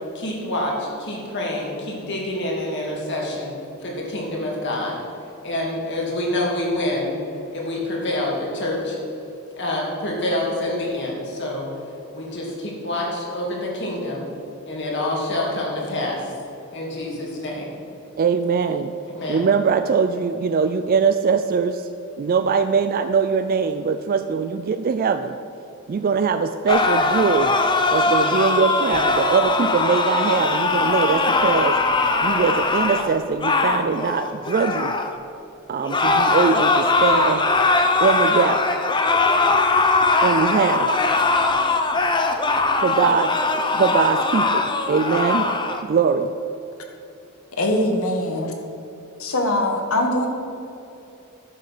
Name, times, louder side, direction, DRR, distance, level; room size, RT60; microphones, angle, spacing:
voice 1, 0.1-3.5 3.8-5.0 5.4-7.1 7.5-9.0 9.5-11.7 12.1-14.3 14.7-16.2 16.7-17.7 19.1-19.5, left 1 dB, 55° left, -3 dB, 2.6 m, -27 dB
voice 2, 18.2-18.9 19.3-21.9 22.2-25.4 25.9-27.5 27.9-31.8 32.2-35.0 35.7-37.4 38.0-38.6 40.2-40.9 42.8-43.3 43.7-45.5 45.8-46.3, right 5 dB, 45° right, 9 dB, 0.3 m, -21 dB
sound 1, 26.7-35.1 35.8-45.8, left 3 dB, 20° left, 0.7 m, -20 dB
voice 3, 47.6-48.5 49.2-50.3, left 1 dB, 85° left, 3 dB, 1.6 m, -22 dB
11.0 x 6.6 x 6.5 m, 2.9 s
head